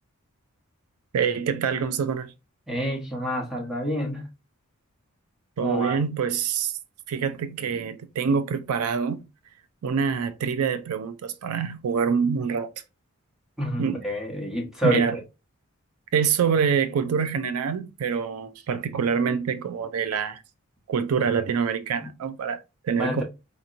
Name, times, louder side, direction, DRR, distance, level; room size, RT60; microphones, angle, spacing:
voice 1, 1.1-2.3 5.6-6.7 7.1-9.2 9.8-12.7 13.8-14.0 14.8-15.2 16.1-20.4 20.9-23.2, right 6 dB, 80° right, 0.4 m, -25 dB
voice 2, 2.7-4.2 5.6-6.0 13.6-15.2 23.0-23.2, right 1 dB, ahead, 1.0 m, -28 dB
4.2 x 2.9 x 2.4 m
head